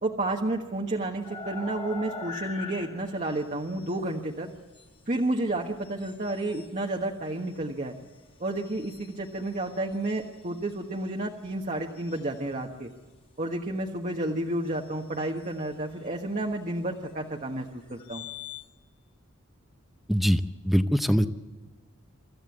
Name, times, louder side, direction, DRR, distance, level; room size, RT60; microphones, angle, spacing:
voice 1, 0.0-4.5 5.1-7.9 8.4-12.9 13.4-18.3, right 1 dB, 35° right, 0 dB, 1.3 m, -31 dB
sound 1, 1.2-4.0 4.7-4.9 5.8-6.8 8.6-10.6 11.4-11.5 12.0-12.3 14.7-14.8 15.1-15.7 17.9-18.7, left 4 dB, 25° left, 2.2 m, -42 dB
voice 2, 20.1-21.3, equal, ahead, 10 dB, 0.7 m, -23 dB
25.5 x 14.5 x 8.4 m, 1.3 s
head